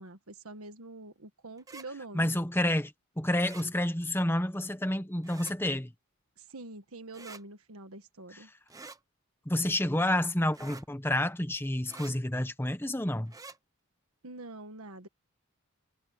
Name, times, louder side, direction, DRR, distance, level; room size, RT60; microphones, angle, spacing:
voice 1, 0.0-2.3 6.4-8.5 14.2-15.1, right 2 dB, 85° right, 1.5 m, -45 dB
sound 1, 1.6-1.9 3.4-3.7 5.2-5.6 7.1-7.4 8.7-9.0 10.5-10.9 11.9-12.1 13.3-13.6, right 3 dB, 15° right, 0.9 m, -47 dB
voice 2, 2.1-5.9 9.4-13.3, left 1 dB, 10° left, 1.2 m, -29 dB
head